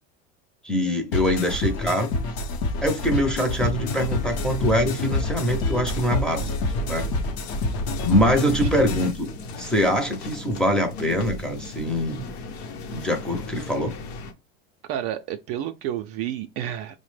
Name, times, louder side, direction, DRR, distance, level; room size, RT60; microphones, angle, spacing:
voice 1, 0.6-2.1 2.8-6.5 6.9-7.1 8.0-9.3 9.6-12.3 12.9-13.9, equal, ahead, 0.6 m, -23 dB
sound 1, 1.1-9.1, left 2 dB, 55° left, 0.8 m, -27 dB
sound 2, 3.9-14.3, left 2 dB, 85° left, 0.8 m, -37 dB
voice 2, 14.9-17.0, right 11 dB, 50° right, 0.4 m, -30 dB
4.9 x 2.1 x 3.2 m
supercardioid pair, 120°, 32 cm